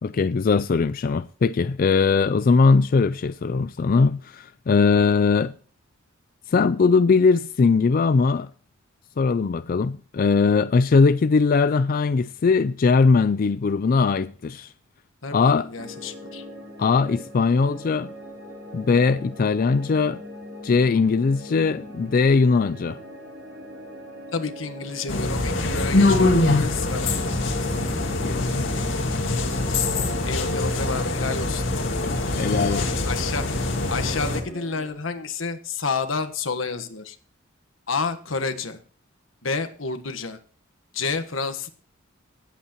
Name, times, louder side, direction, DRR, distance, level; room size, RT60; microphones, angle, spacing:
voice 1, 0.0-5.5 6.5-8.5 9.2-14.7 15.3-15.7 16.8-18.1 18.7-20.2 20.6-23.0 28.2-28.7 32.0-32.9, left 4 dB, 45° left, 0.4 m, -20 dB
voice 2, 15.2-16.4 24.3-27.3 30.2-32.0 33.0-33.5 33.9-37.2 37.9-38.8 39.4-40.4 40.9-41.7, left 4 dB, 85° left, 1.4 m, -30 dB
sound 1, 15.8-34.9, left 1 dB, 85° right, 3.4 m, -41 dB
sound 2, 25.1-34.4, left 2 dB, 70° left, 2.0 m, -23 dB
18.0 x 8.3 x 3.0 m
head